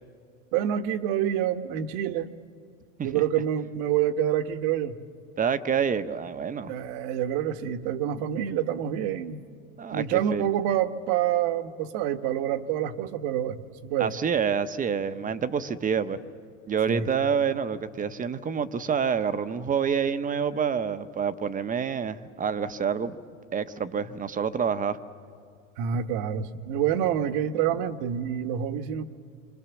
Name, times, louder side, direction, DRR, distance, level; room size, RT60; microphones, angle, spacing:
voice 1, 0.5-2.3 3.0-5.0 6.6-9.4 9.9-14.1 16.9-17.1 25.8-29.1, right 10 dB, 55° right, 11 dB, 1.4 m, -27 dB
voice 2, 5.4-6.7 9.8-10.5 14.0-16.2 16.7-23.2 23.5-25.0, right 7 dB, 20° right, 13 dB, 0.9 m, -27 dB
27.0 x 24.0 x 7.1 m, 2.3 s
hypercardioid pair, 105°, 40 cm